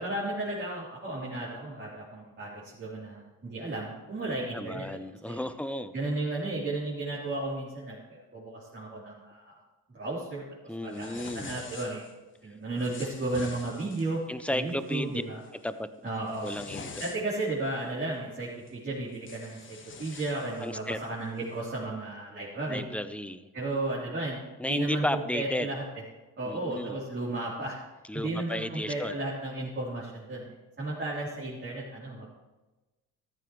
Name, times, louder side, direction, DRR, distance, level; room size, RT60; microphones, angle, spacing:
voice 1, 0.0-4.9 5.3-5.5 5.9-9.5 9.9-10.5 10.8-12.1 12.4-14.2 14.5-15.4 16.0-16.5 17.0-19.6 20.0-22.8 23.5-25.8 26.4-27.8 28.1-32.3, right 2 dB, 35° right, -7 dB, 3.5 m, -34 dB
voice 2, 4.5-5.9 10.7-11.5 14.3-15.2 15.6-15.9 16.4-16.9 20.6-21.0 22.7-23.5 24.6-25.7 26.4-27.0 28.1-29.2, left 1 dB, 5° left, 11 dB, 0.6 m, -33 dB
sound 1, 10.9-12.1 12.8-14.2 14.7-15.0 15.4-15.7 16.1-17.5 18.7-18.8 19.1-21.1, left 4 dB, 35° left, 1.5 m, -45 dB
14.0 x 14.0 x 3.1 m, 1.1 s
cardioid pair, 115°, 33 cm